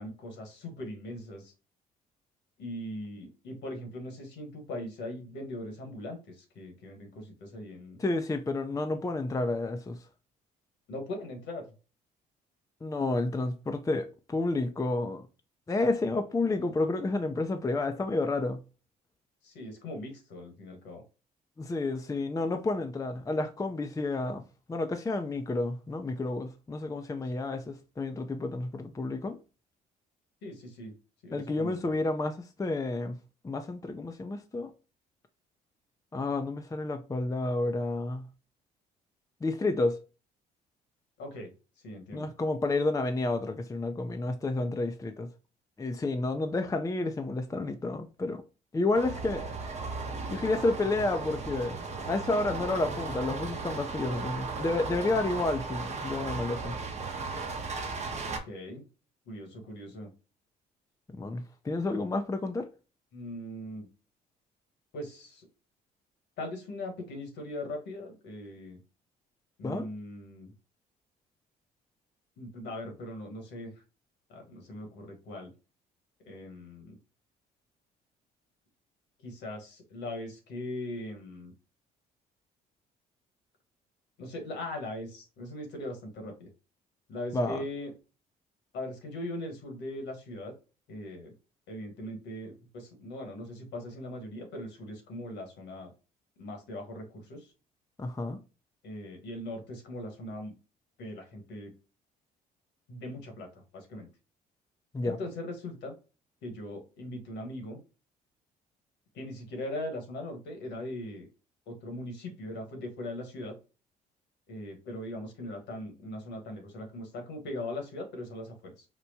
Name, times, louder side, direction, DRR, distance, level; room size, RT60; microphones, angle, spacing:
voice 1, 0.0-1.5 2.6-8.0 10.9-11.6 19.4-21.0 30.4-30.9 31.2-31.8 41.2-41.5 41.8-42.3 58.3-58.9 59.3-60.1 63.1-63.9 64.9-65.5 66.4-68.8 69.6-70.5 72.4-73.7 74.3-75.5 76.2-77.0 79.2-81.5 84.2-86.5 87.1-87.9 88.7-90.5 90.9-91.3 91.7-95.9 96.4-97.5 98.8-100.5 101.0-101.7 102.9-104.1 105.0-105.9 106.4-107.8 109.1-111.3 111.7-113.6 114.5-118.8, left 1 dB, 70° left, 1.4 m, -40 dB
voice 2, 8.0-10.0 12.8-15.2 15.7-18.6 21.6-29.4 31.3-33.2 33.4-34.7 36.1-38.3 39.4-40.0 42.1-45.3 45.8-48.4 48.7-49.5 50.3-51.8 52.1-56.8 61.1-62.7 69.6-69.9 87.3-87.6 98.0-98.4 104.9-105.2, left 2 dB, 15° left, 0.5 m, -30 dB
sound 1, 48.9-58.4, right 4 dB, 35° right, 0.9 m, -36 dB
4.4 x 2.2 x 2.7 m
supercardioid pair, 60°, 19 cm